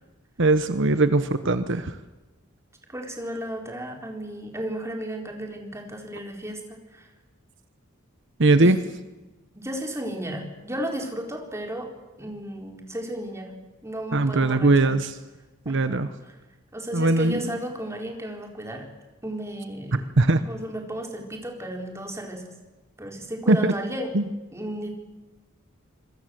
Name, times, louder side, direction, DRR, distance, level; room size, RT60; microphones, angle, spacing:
voice 1, 0.4-2.0 8.4-8.8 14.1-15.1 15.7-16.1 16.9-17.6 19.9-20.4 23.5-23.7 24.1-24.2, right 2 dB, 65° right, 11 dB, 1.1 m, -20 dB
voice 2, 2.9-7.1 8.6-8.7 9.5-11.9 12.2-13.5 13.8-15.0 15.7-16.0 16.7-18.9 19.2-20.1 20.5-22.5 23.0-24.1 24.5-24.9, right 1 dB, 15° right, 2 dB, 4.1 m, -34 dB
26.5 x 22.0 x 7.8 m, 1.1 s
head